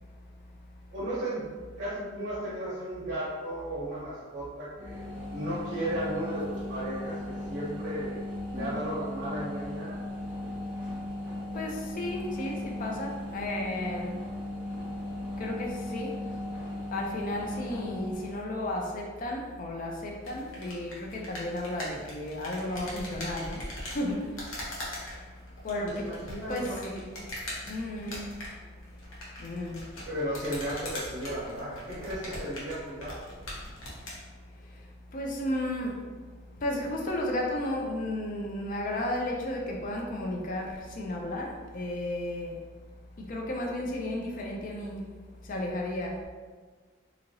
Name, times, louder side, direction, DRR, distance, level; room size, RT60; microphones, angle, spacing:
voice 1, 0.9-1.4 1.8-8.2 8.5-10.0 25.8-27.1 30.0-33.4, right 1 dB, 60° right, -10 dB, 0.8 m, -35 dB
sound 1, 4.8-18.3, left 1 dB, 5° right, 0.6 m, -37 dB
voice 2, 8.6-8.9 11.5-14.2 15.0-15.1 15.4-16.3 16.6-25.4 25.6-26.1 26.5-27.1 27.3-28.5 29.0-30.0 34.5-36.1 36.6-42.7 43.2-45.1 45.4-46.2, left 1 dB, 45° left, 0 dB, 0.4 m, -34 dB
sound 2, 20.2-34.2, left 1 dB, 85° left, 0.9 m, -41 dB
2.8 x 2.8 x 2.6 m, 1.4 s
head